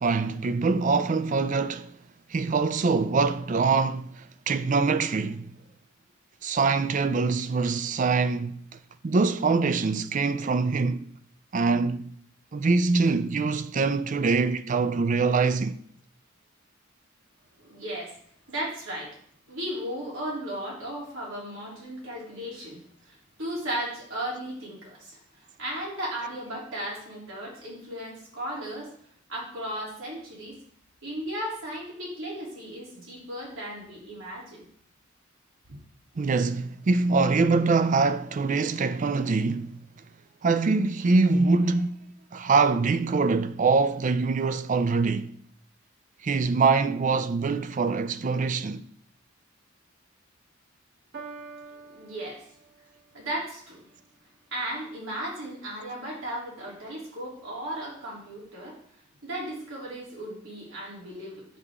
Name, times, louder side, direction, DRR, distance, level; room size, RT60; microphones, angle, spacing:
voice 1, 0.0-1.9 2.3-5.5 6.4-8.6 9.0-11.0 11.5-12.1 12.5-15.8 36.2-39.8 40.4-42.0 42.3-45.3 46.2-48.8, right 4 dB, 40° right, 0.4 m, -24 dB
voice 2, 17.6-18.1 18.5-19.1 19.5-22.8 23.1-25.2 25.6-28.9 29.3-30.6 31.0-34.6 51.8-52.4 53.1-53.8 54.5-58.8 59.2-61.5, right 1 dB, 90° right, 3.2 m, -35 dB
Piano, 51.1-53.1, right 4 dB, 55° right, 1.4 m, -45 dB
8.2 x 6.8 x 3.6 m
head